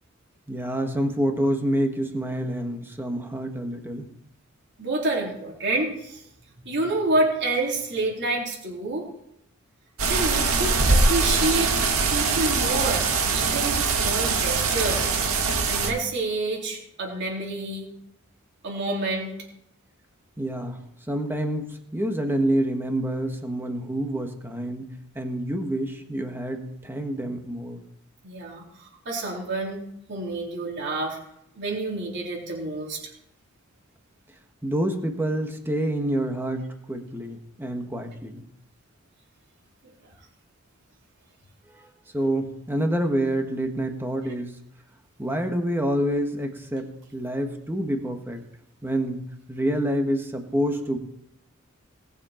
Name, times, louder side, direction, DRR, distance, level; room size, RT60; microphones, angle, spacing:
voice 1, 0.5-4.1 20.4-20.8 21.1-27.8 34.6-38.5 41.8-41.9 42.1-44.6 45.2-48.4 48.8-49.2 49.5-51.0, right 1 dB, 10° right, 4 dB, 1.4 m, -27 dB
voice 2, 4.8-6.2 6.6-9.0 10.1-11.7 12.1-13.0 13.3-15.1 15.7-17.9 18.6-19.3 28.2-29.8 30.1-31.2 31.6-33.0, right 2 dB, 55° right, -2 dB, 3.8 m, -28 dB
sound 1, 10.0-15.9, right 4 dB, 80° right, 1.9 m, -22 dB
19.0 x 7.1 x 4.4 m, 0.78 s
head